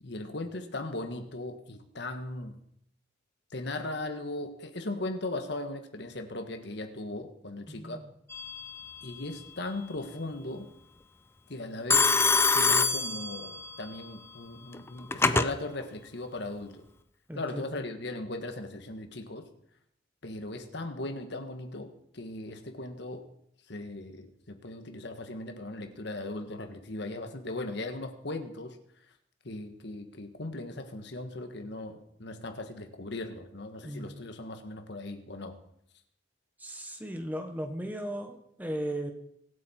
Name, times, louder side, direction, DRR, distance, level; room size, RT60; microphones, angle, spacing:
voice 1, 0.0-2.6 3.5-8.0 9.0-10.7 11.5-16.8 17.3-19.4 20.2-23.3 23.7-28.8 29.4-35.6, left 2 dB, 65° left, 6 dB, 1.5 m, -38 dB
voice 2, 7.7-8.1 17.3-17.6 33.8-34.1 36.6-39.1, right 1 dB, 10° right, 5 dB, 1.2 m, -36 dB
Telephone, 8.3-8.8 11.9-13.8 14.7-15.5, left 4 dB, 15° left, 0.5 m, -25 dB
23.5 x 8.6 x 4.4 m, 0.72 s
head